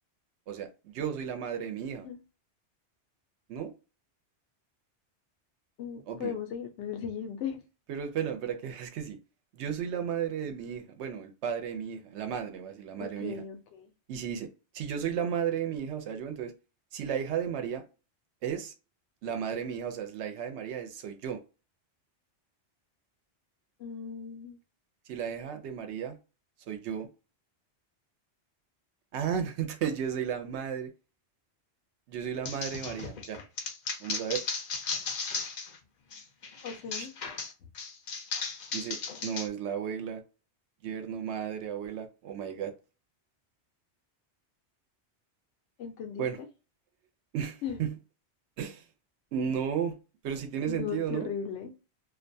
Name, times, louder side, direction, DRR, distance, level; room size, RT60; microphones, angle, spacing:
voice 1, 0.5-2.1 3.5-3.7 6.1-6.3 7.9-9.2 9.5-13.4 14.1-16.5 16.9-17.8 18.4-18.7 19.2-21.4 25.1-26.2 26.7-27.1 29.1-30.9 32.1-33.4 34.0-34.4 37.0-37.1 38.7-40.2 40.8-42.7 46.2-46.4 47.3-48.0 48.6-48.8 49.3-50.0 50.2-51.3, right 8 dB, 80° right, 0.9 m, -34 dB
voice 2, 5.8-7.6 13.0-13.9 23.8-24.6 36.6-37.1 45.8-46.5 47.6-47.8 50.7-51.7, left 7 dB, 85° left, 0.9 m, -37 dB
sound 1, 32.5-35.8 36.1-39.5, left 4 dB, 55° left, 0.5 m, -36 dB
2.4 x 2.2 x 2.6 m
omnidirectional pair, 1.2 m